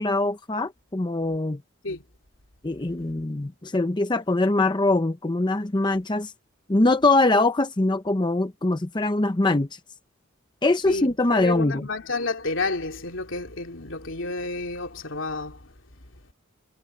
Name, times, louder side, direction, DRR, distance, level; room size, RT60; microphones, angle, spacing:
voice 1, 0.0-1.6 2.6-6.3 6.7-9.8 10.6-11.9, left 2 dB, 20° left, 0.7 m, -23 dB
voice 2, 10.9-15.6, left 3 dB, 75° left, 2.8 m, -30 dB
head